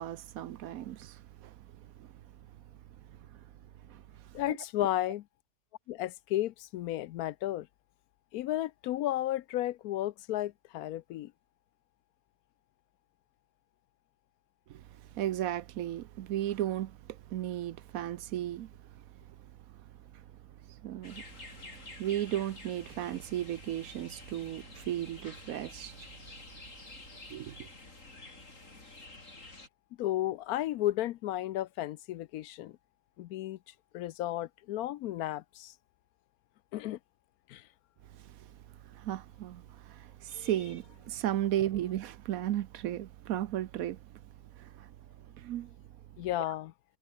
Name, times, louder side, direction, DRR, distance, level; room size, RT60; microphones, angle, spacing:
voice 1, 0.0-1.5 2.0-2.1 3.9-4.0 14.7-14.8 15.1-18.7 20.7-21.2 21.6-25.9 27.3-27.5 38.2-38.4 38.9-44.0 44.6-44.9 45.4-45.7, right 12 dB, 65° right, 1.0 m, -35 dB
voice 2, 4.3-5.2 5.9-7.7 8.3-11.3 30.0-32.8 33.2-33.6 33.9-35.7 36.7-37.0 37.5-37.7 40.3-40.5 46.2-46.7, left 14 dB, 75° left, 1.0 m, -33 dB
sound 1, 21.0-29.7, left 2 dB, 50° left, 4.9 m, -50 dB
omnidirectional pair, 1.7 m